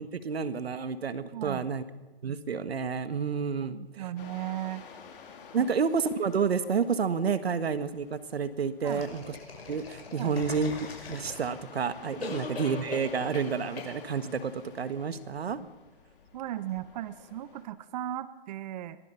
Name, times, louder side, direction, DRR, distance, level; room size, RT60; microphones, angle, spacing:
voice 1, 0.0-1.8 2.2-4.1 5.5-9.2 9.7-15.6, right 6 dB, 85° right, 12 dB, 1.6 m, -30 dB
voice 2, 1.3-1.7 3.7-4.8 5.6-5.7 8.8-9.0 10.1-10.3 12.2-12.4 16.3-19.0, right 13 dB, 45° right, 14 dB, 1.0 m, -37 dB
sound 1, 4.2-17.6, left 6 dB, 60° left, 4.3 m, -51 dB
sound 2, 8.9-11.7 12.2-13.5 13.8-13.9, left 4 dB, 80° left, 6.2 m, -40 dB
22.0 x 21.5 x 5.8 m, 1.2 s
hypercardioid pair, 145°, 30 cm